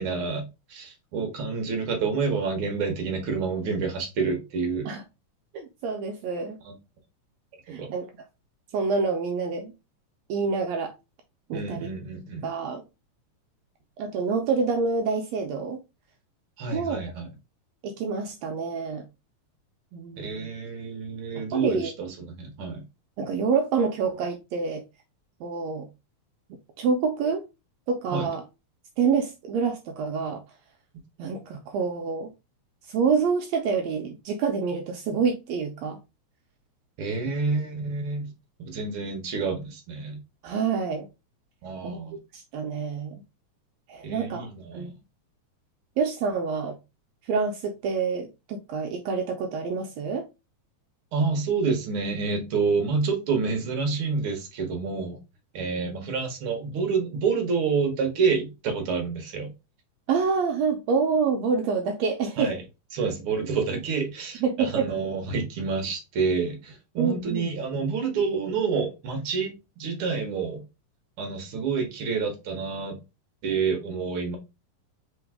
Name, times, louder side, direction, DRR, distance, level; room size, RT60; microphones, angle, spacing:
voice 1, 0.0-4.9 6.6-6.7 7.7-7.9 11.5-12.5 16.6-17.3 20.2-22.8 28.1-28.3 37.0-38.3 38.6-40.2 41.6-42.1 44.0-44.9 51.1-55.2 55.5-59.5 62.4-62.6 62.9-70.6 71.2-73.0 73.4-74.4, right 5 dB, 60° right, 1.6 m, -28 dB
voice 2, 5.5-6.6 7.7-8.1 8.7-9.7 10.3-10.9 11.5-11.8 12.4-12.8 14.0-15.8 16.7-17.0 17.8-19.0 19.9-20.5 21.3-21.9 23.2-24.8 25.4-25.9 26.8-27.5 27.9-28.4 29.0-30.4 31.2-32.3 32.8-36.0 40.4-41.1 41.8-42.0 42.3-43.2 43.9-44.5 44.7-44.9 46.0-46.8 47.2-50.2 55.8-56.1 60.1-62.5 64.4-64.9 67.0-67.5, right 5 dB, 75° right, 1.7 m, -27 dB
4.0 x 3.8 x 3.5 m
omnidirectional pair, 3.4 m